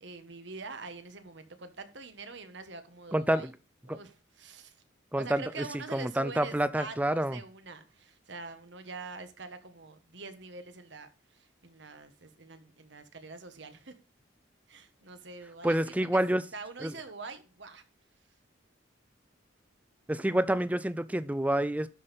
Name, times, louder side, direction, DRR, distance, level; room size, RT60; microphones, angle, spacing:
voice 1, 0.0-3.5 3.8-4.8 5.2-13.9 14.7-16.2 16.5-17.8, right 4 dB, 65° right, 1.3 m, -45 dB
voice 2, 3.1-3.5 3.9-4.0 5.1-5.7 5.9-7.4 15.6-16.4 16.8-16.9 20.1-21.9, right 1 dB, 10° right, 0.4 m, -28 dB
12.0 x 5.4 x 4.2 m
head